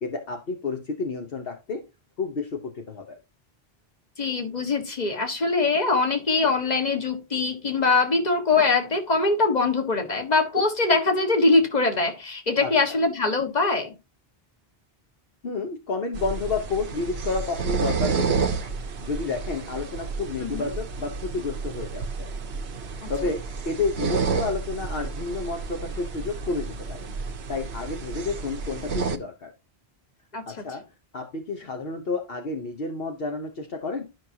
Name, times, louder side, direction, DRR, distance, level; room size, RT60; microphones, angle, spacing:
voice 1, 0.0-1.8 2.2-3.2 12.6-13.0 15.4-18.6 19.0-22.3 23.1-27.1 27.5-29.5 30.5-30.8 31.1-34.1, left 4 dB, 65° left, 1.2 m, -30 dB
voice 2, 4.2-13.9 20.4-20.7 23.0-23.1 30.3-30.4, left 3 dB, 40° left, 1.7 m, -23 dB
sound 1, 16.1-29.2, right 5 dB, 90° right, 1.1 m, -30 dB
12.0 x 5.5 x 2.8 m
omnidirectional pair, 1.1 m